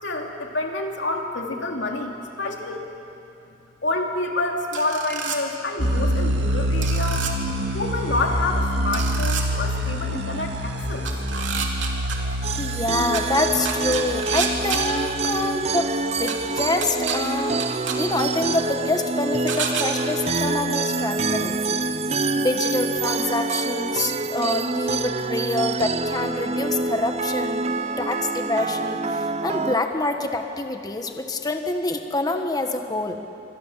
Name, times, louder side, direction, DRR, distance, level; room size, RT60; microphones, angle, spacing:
voice 1, 0.0-2.8 3.8-7.4 7.7-11.0, left 2 dB, 70° left, 1 dB, 3.2 m, -28 dB
sound 1, 4.7-5.4 6.8-7.3 8.9-9.4 11.0-12.2 13.1-13.2 13.6-14.8 16.3-16.4 16.8-17.2 17.6-18.0 19.5-19.8, right 7 dB, 85° right, 3.0 m, -28 dB
sound 2, 5.8-16.3, equal, 70° right, 2.1 m, -27 dB
sound 3, 12.4-29.8, right 3 dB, 35° right, 0.7 m, -26 dB
voice 2, 12.6-15.9 16.2-17.6 18.0-21.8 22.3-27.6 28.0-33.2, left 2 dB, 20° left, 5 dB, 1.4 m, -26 dB
27.5 x 25.0 x 7.5 m, 2.7 s
head